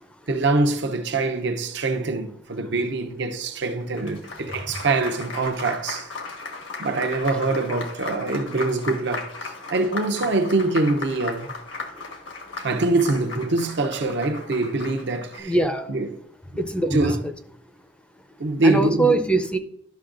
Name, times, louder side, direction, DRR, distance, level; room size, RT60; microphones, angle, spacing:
voice 1, 0.3-6.1 6.8-9.3 9.7-11.5 12.6-15.6 15.9-16.2 16.5-16.6 16.9-17.2 18.4-19.2, right 3 dB, 65° right, 0.7 m, -24 dB
Applause, 3.7-15.4, left 4 dB, 85° left, 1.4 m, -36 dB
voice 2, 15.4-15.9 16.6-17.1 18.6-19.6, right 2 dB, 5° left, 0.5 m, -22 dB
11.5 x 6.1 x 2.5 m
head